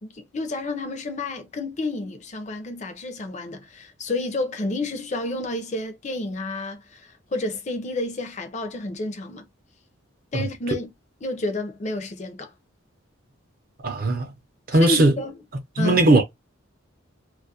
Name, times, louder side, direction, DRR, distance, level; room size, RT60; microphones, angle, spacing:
voice 1, 0.0-9.5 10.3-10.9 11.2-12.5 14.7-15.3 15.8-16.0, left 2 dB, 35° left, 0.4 m, -30 dB
voice 2, 13.8-14.3 14.7-15.1 15.8-16.2, right 1 dB, 45° right, 0.5 m, -18 dB
2.3 x 2.1 x 2.6 m
head